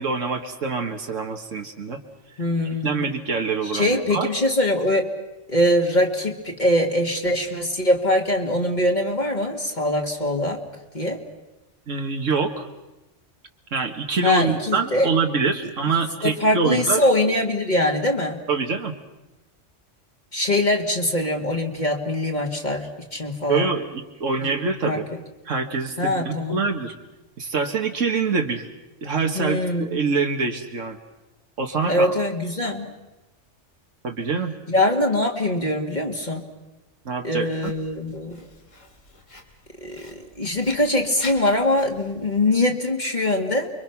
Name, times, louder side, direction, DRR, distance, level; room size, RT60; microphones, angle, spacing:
voice 1, 0.0-2.0 2.7-4.3 11.9-12.7 13.7-17.0 18.5-18.9 23.5-25.1 25.5-26.9 27.4-28.7 29.0-31.0 31.6-32.2 34.0-34.5 37.1-37.7, right 4 dB, 80° right, 4 dB, 1.9 m, -25 dB
voice 2, 2.4-3.1 3.6-5.1 5.5-10.6 10.9-11.2 14.2-15.1 16.2-18.5 20.3-23.7 24.4-24.5 24.9-25.0 26.0-26.6 29.3-30.0 31.9-32.9 34.7-36.5 37.2-38.4 39.8-43.7, left 1 dB, 35° left, 1 dB, 2.2 m, -23 dB
Writing, 37.6-42.6, left 2 dB, 80° left, 3.2 m, -44 dB
29.5 x 23.0 x 5.9 m, 1.0 s
omnidirectional pair, 1.3 m